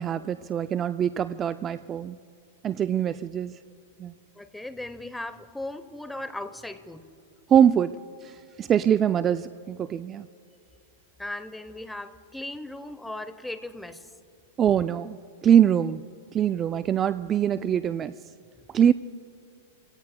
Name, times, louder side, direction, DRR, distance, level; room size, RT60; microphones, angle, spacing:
voice 1, 0.0-2.2 2.6-3.5 4.0-4.1 7.5-8.0 8.2-10.3 14.6-15.2 15.4-16.0 16.3-18.1 18.7-18.9, right 9 dB, 25° right, 13 dB, 0.3 m, -23 dB
voice 2, 4.4-7.0 11.2-14.1, left 1 dB, 5° left, 11 dB, 0.8 m, -37 dB
28.5 x 17.0 x 2.2 m, 2.7 s
hypercardioid pair, 130°, 0 cm